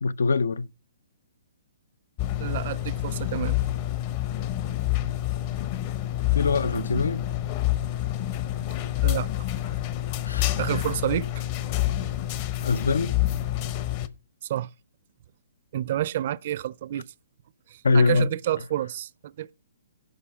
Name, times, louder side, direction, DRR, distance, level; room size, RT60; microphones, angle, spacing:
voice 1, 0.0-0.7 6.3-7.2 10.2-10.8 12.6-13.1 17.8-18.3, left 4 dB, 85° left, 0.5 m, -23 dB
sound 1, 2.2-14.1, left 14 dB, 35° left, 0.8 m, -28 dB
voice 2, 2.4-3.6 9.0-9.3 10.6-11.3 14.4-14.7 15.7-17.0 17.7-19.5, right 12 dB, 50° right, 0.4 m, -29 dB
11.5 x 5.4 x 6.1 m
hypercardioid pair, 150°, 0 cm